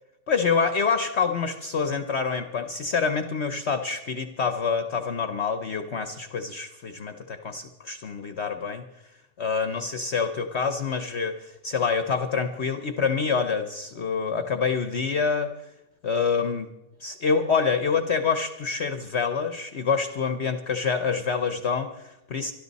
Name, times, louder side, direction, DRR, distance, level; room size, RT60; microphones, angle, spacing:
voice 1, 0.3-8.9 9.4-15.5 16.0-16.7 17.0-22.5, left 5 dB, 50° left, 8 dB, 0.9 m, -26 dB
24.5 x 11.5 x 4.1 m, 0.95 s
omnidirectional pair, 1.7 m